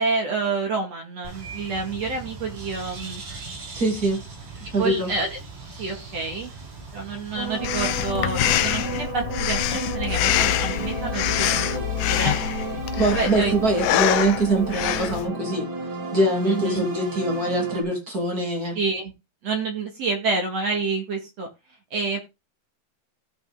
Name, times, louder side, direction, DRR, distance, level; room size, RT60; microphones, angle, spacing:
voice 1, 0.0-3.2 4.8-5.4 5.8-6.5 6.9-12.6 13.1-13.6 16.5-16.8 18.7-19.1 19.4-21.5 21.9-22.2, right 4 dB, 50° right, 2.5 m, -28 dB
Bird, 1.2-7.8, right 4 dB, 75° right, 9.8 m, -39 dB
voice 2, 3.7-4.2 4.7-5.1 13.0-15.7 16.1-18.8, right 2 dB, 25° right, 2.7 m, -23 dB
sound 1, 7.4-17.8, right 3 dB, 90° right, 6.2 m, -32 dB
Breathing, 7.6-15.3, left 13 dB, 85° left, 1.9 m, -25 dB
16.0 x 6.1 x 3.7 m
omnidirectional pair, 4.9 m